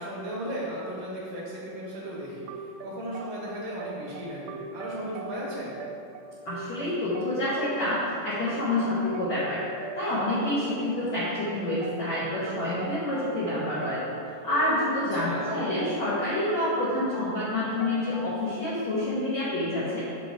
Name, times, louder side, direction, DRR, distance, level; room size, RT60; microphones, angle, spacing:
voice 1, 0.0-5.7 15.1-15.5, equal, 70° right, -6 dB, 2.3 m, -36 dB
sound 1, 2.5-18.5, right 4 dB, 85° right, 2.9 m, -42 dB
voice 2, 6.4-9.6 9.9-14.0 14.4-20.0, left 1 dB, 80° left, -11 dB, 1.6 m, -28 dB
6.6 x 6.6 x 4.7 m, 2.7 s
omnidirectional pair, 5.4 m